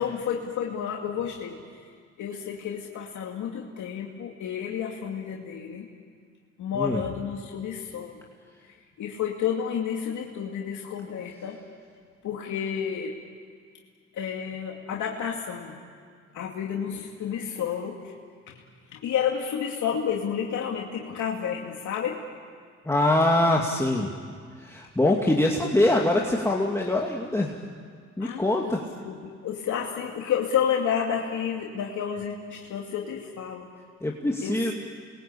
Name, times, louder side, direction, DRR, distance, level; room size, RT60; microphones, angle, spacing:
voice 1, 0.0-1.6 2.2-5.9 6.6-8.2 8.6-11.6 12.2-13.2 14.1-15.8 16.3-18.1 18.9-22.2 28.2-33.7 34.4-34.7, left 8 dB, 75° left, -1 dB, 2.6 m, -30 dB
voice 2, 22.8-24.1 24.6-27.6 28.2-28.8 34.0-34.7, left 1 dB, 10° left, -1 dB, 2.5 m, -23 dB
29.0 x 22.5 x 8.7 m, 2.1 s
cardioid pair, 90°, 30 cm